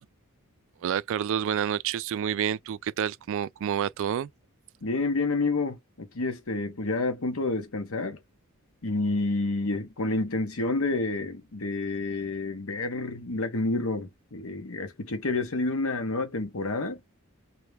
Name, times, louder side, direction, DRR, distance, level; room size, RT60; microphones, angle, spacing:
voice 1, 0.8-4.3, right 9 dB, 60° right, 0.3 m, -28 dB
voice 2, 4.8-8.2 8.8-17.0, left 2 dB, 70° left, 1.0 m, -29 dB
3.3 x 2.8 x 3.3 m
head